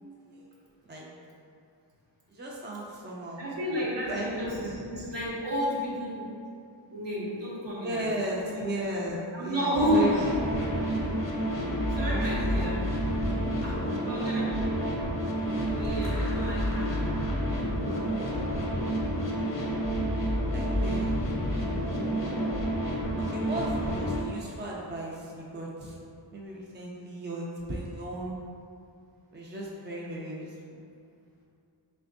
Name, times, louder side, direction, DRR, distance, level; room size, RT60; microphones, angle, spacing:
voice 1, 2.3-3.4 3.6-3.8 4.1-4.7 7.8-10.4 10.6-10.9 12.0-12.9 20.5-21.2 23.3-26.0 26.3-28.3 29.3-30.5, right 1 dB, 25° right, -3 dB, 0.4 m, -35 dB
voice 2, 3.4-6.2 6.9-8.0 8.4-8.5 9.3-10.2 11.9-12.8 13.6-13.8 14.1-14.5 15.8-17.2, equal, 70° right, -7 dB, 1.0 m, -31 dB
sound 1, 9.7-24.2, equal, 45° left, 0.6 m, -29 dB
3.4 x 3.3 x 2.6 m, 2.5 s
wide cardioid pair, 45°, 45 cm